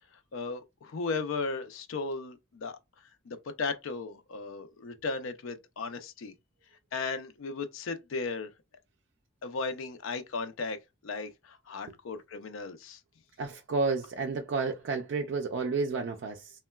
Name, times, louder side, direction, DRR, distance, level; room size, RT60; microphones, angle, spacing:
voice 1, 0.3-2.8 3.3-6.3 6.9-8.5 9.4-10.8 11.0-13.0, left 4 dB, 70° left, 0.4 m, -36 dB
voice 2, 13.4-16.5, right 4 dB, 60° right, 0.4 m, -31 dB
3.6 x 2.1 x 2.2 m
head